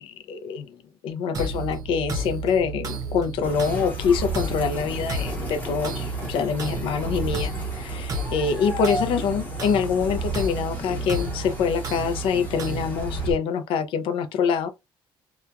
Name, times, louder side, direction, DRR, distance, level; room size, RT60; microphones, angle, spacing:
voice 1, 0.0-14.7, left 6 dB, 65° left, 0.5 m, -25 dB
sound 1, 1.3-13.3, right 3 dB, 40° right, 0.6 m, -32 dB
sound 2, 3.4-13.3, left 1 dB, 15° left, 0.8 m, -35 dB
2.8 x 2.2 x 2.3 m
cardioid pair, 175°, 9 cm